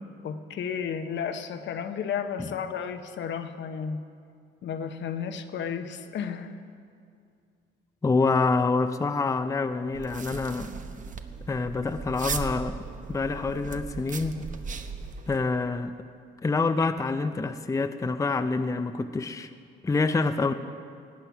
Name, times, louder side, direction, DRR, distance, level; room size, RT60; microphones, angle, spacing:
voice 1, 0.2-4.0 4.6-6.5, left 7 dB, 65° left, 8 dB, 1.0 m, -33 dB
voice 2, 8.0-10.7 11.5-12.8 13.1-14.5 15.3-15.9 16.4-19.5 19.8-20.5, left 3 dB, 15° left, 9 dB, 0.5 m, -26 dB
sound 1, 9.9-15.4, right 5 dB, 40° right, 0.9 m, -37 dB
18.0 x 8.9 x 6.0 m, 2.3 s
cardioid pair, 90°, 20 cm